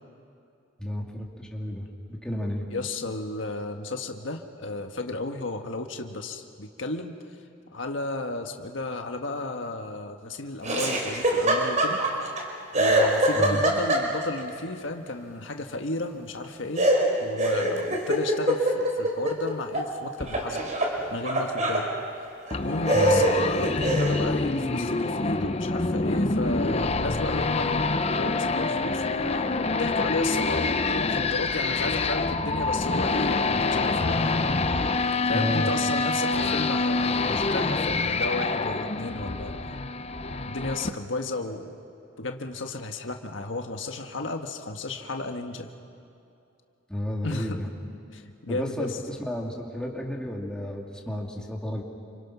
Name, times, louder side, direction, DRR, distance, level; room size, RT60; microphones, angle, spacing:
voice 1, 0.8-2.7 13.3-13.6 22.9-23.2 35.3-35.7 46.9-47.7 48.5-51.8, left 1 dB, 5° left, -1 dB, 2.7 m, -32 dB
voice 2, 2.7-7.2 7.7-12.0 12.7-16.9 17.2-20.6 21.1-21.9 22.6-29.2 29.7-34.4 35.3-39.6 40.5-41.7 42.2-45.7 47.2-47.6 48.1-49.0, left 2 dB, 80° left, 5 dB, 1.5 m, -33 dB
Laughter, 10.6-12.4 12.7-14.4 16.8-19.9 20.2-21.9 22.5-22.6 22.9-24.2, right 1 dB, 40° right, 4.0 m, -24 dB
sound 1, 22.5-40.9, left 3 dB, 35° left, 0.8 m, -26 dB
29.0 x 26.5 x 6.0 m, 2.7 s
head